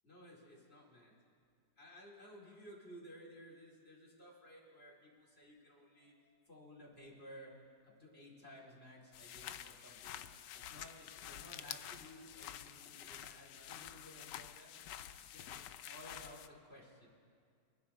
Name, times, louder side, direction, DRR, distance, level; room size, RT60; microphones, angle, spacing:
voice 1, 0.0-1.1 1.8-7.5 7.8-10.2 10.5-14.7 15.2-17.1, equal, 35° left, -3 dB, 2.6 m, -56 dB
sound 1, 9.1-16.5, left 11 dB, 80° left, 1.2 m, -49 dB
23.5 x 10.5 x 4.2 m, 2.2 s
omnidirectional pair, 1.9 m